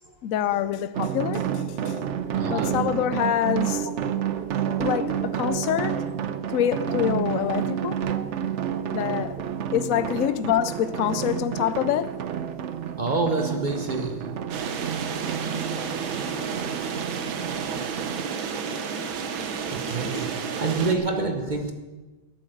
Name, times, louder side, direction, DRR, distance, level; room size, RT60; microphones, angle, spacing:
voice 1, 0.2-2.0 2.4-3.9 4.8-5.9 6.5-8.1 8.9-9.3 9.7-12.2 19.9-20.3, left 11 dB, 70° left, 0.7 m, -26 dB
sound 1, 0.9-18.2, right 8 dB, 65° right, 0.7 m, -30 dB
voice 2, 2.4-2.9 4.2-4.6 5.1-5.3 13.0-14.4 16.6-16.7 17.7-17.9 18.6-18.7 19.4-21.7, right 3 dB, 35° right, 0.8 m, -28 dB
sound 2, 14.5-20.9, right 6 dB, 85° right, 1.9 m, -31 dB
12.5 x 8.7 x 7.9 m
omnidirectional pair, 2.1 m